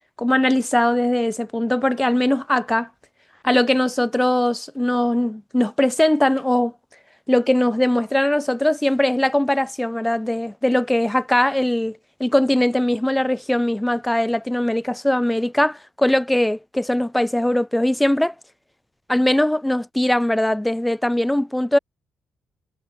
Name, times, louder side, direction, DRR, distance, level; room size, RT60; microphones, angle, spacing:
voice 1, 0.2-2.9 3.4-6.7 7.3-18.3 19.1-21.8, left 1 dB, 5° left, 1.2 m, -20 dB
cardioid pair, 90°, 0 cm